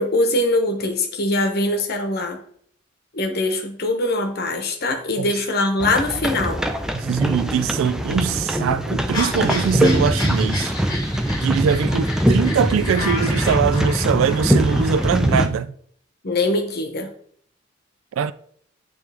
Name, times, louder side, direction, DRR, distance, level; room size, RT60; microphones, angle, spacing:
voice 1, 0.0-2.4 3.1-6.6 16.2-17.1, left 2 dB, 50° left, 1.0 m, -22 dB
sound 1, 5.8-15.5, equal, 5° right, 0.4 m, -22 dB
voice 2, 6.9-10.7 11.4-15.7 18.1-18.3, right 7 dB, 80° right, 0.3 m, -22 dB
sound 2, 9.1-15.1, left 2 dB, 20° left, 1.6 m, -32 dB
8.9 x 3.2 x 3.4 m
head